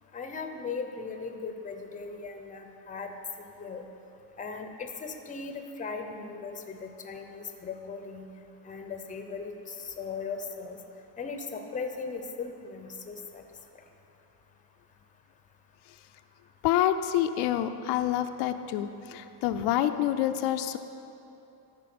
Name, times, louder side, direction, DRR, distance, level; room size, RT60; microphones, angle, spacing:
voice 1, 0.1-3.1 3.4-3.8 4.4-8.3 8.6-10.8 11.2-13.4, left 4 dB, 20° left, 6 dB, 0.7 m, -38 dB
voice 2, 16.6-20.8, left 11 dB, 85° left, 8 dB, 0.5 m, -27 dB
13.0 x 4.5 x 6.0 m, 2.9 s
cardioid pair, 140°, 39 cm